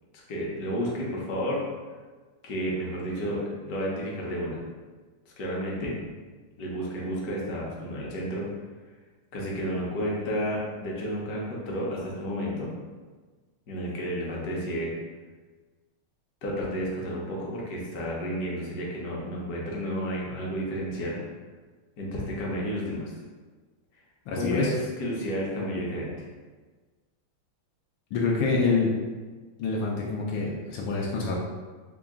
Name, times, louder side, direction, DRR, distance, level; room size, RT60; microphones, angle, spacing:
voice 1, 0.3-1.6 2.4-4.6 5.4-5.9 6.6-8.5 9.3-12.7 13.7-14.9 16.4-21.2 22.0-23.1 24.3-26.1, equal, 60° left, -4 dB, 1.0 m, -31 dB
voice 2, 24.3-24.7 28.1-28.9 29.6-31.4, left 4 dB, 75° left, -2 dB, 1.3 m, -26 dB
3.7 x 2.3 x 3.5 m, 1.4 s
omnidirectional pair, 2.4 m